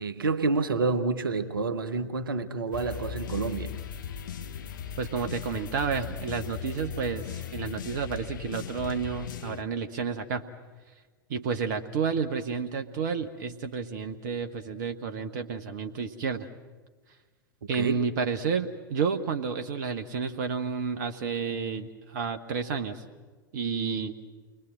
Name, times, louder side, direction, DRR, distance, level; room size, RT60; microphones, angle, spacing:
voice 1, 0.0-3.8 17.7-18.0, right 3 dB, 70° right, 1.2 m, -28 dB
sound 1, 2.7-9.6, left 8 dB, 60° left, 1.1 m, -38 dB
voice 2, 5.0-10.4 11.3-16.5 17.7-23.0 23.5-24.1, right 6 dB, 55° right, 1.1 m, -31 dB
29.0 x 22.0 x 7.7 m
figure-of-eight pair, 90°, 12 cm